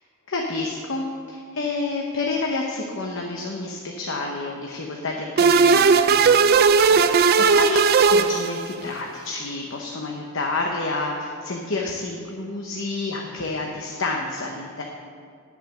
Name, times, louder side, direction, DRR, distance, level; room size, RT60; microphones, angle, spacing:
voice 1, 0.3-14.8, left 3 dB, 60° left, 0 dB, 0.9 m, -29 dB
sound 1, 5.4-9.0, right 5 dB, 45° right, 0.3 m, -17 dB
10.5 x 7.4 x 6.5 m, 2.2 s
head